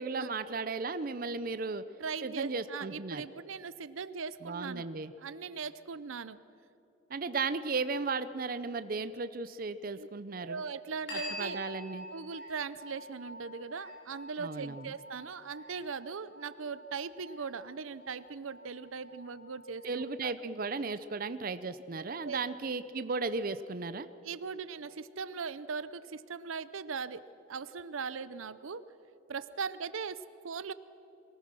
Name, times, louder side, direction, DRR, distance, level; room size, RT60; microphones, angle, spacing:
voice 1, 0.0-1.8 2.2-3.3 4.4-5.1 7.1-10.6 11.4-12.1 14.4-14.9 19.8-24.1, right 4 dB, 45° right, 12 dB, 0.5 m, -35 dB
voice 2, 2.0-4.9 5.2-6.4 10.0-10.1 10.4-11.6 12.1-20.3 22.2-22.4 24.2-28.9 29.3-30.7, right 5 dB, 90° right, 15 dB, 0.6 m, -40 dB
sound 1, 11.1-20.1, left 1 dB, 55° left, 6.1 m, -47 dB
23.0 x 19.0 x 6.2 m, 2.9 s
head